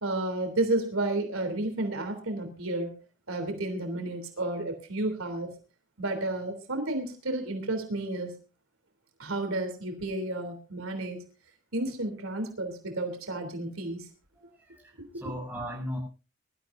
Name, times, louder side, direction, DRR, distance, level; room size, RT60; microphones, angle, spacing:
voice 1, 0.0-2.9 3.3-5.5 6.0-8.3 9.2-11.2 11.7-14.1 15.0-15.1, right 2 dB, 80° right, 5 dB, 3.4 m, -31 dB
voice 2, 14.4-16.0, equal, 10° right, -1 dB, 7.5 m, -38 dB
23.0 x 13.0 x 2.7 m, 0.33 s
head